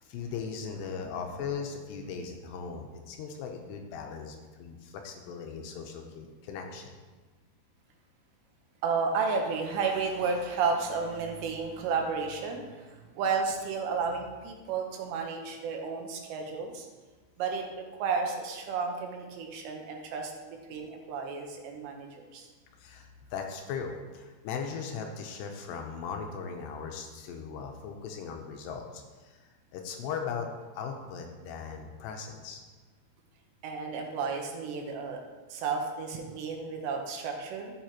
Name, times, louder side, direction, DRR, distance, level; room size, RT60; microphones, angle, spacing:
voice 1, 0.0-6.9 22.8-30.5 30.7-32.6, left 6 dB, 80° left, 3 dB, 2.8 m, -38 dB
voice 2, 8.8-16.9 17.4-22.5 33.6-35.2 35.5-37.7, right 5 dB, 80° right, 2 dB, 3.2 m, -32 dB
13.5 x 8.0 x 3.0 m, 1.3 s
omnidirectional pair, 5.2 m